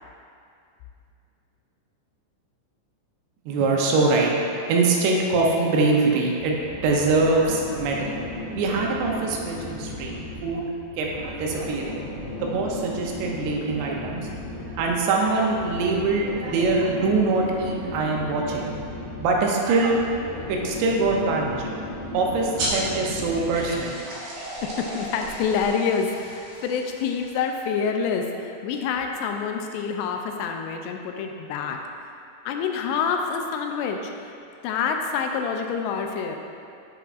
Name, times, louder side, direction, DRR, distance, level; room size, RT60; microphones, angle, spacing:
voice 1, 3.5-8.1 8.6-10.7 11.0-12.0 12.4-14.3 14.7-21.6 22.1-24.0, right 3 dB, 85° right, -1 dB, 2.9 m, -23 dB
sound 1, 6.4-24.0, left 1 dB, 50° left, 1.9 m, -36 dB
sound 2, 22.5-27.6, right 1 dB, 65° right, 2.8 m, -35 dB
voice 2, 24.6-31.8 32.5-34.3 34.6-36.4, left 6 dB, 85° left, 3 dB, 2.7 m, -27 dB
8.3 x 6.9 x 2.5 m, 2.4 s
omnidirectional pair, 4.8 m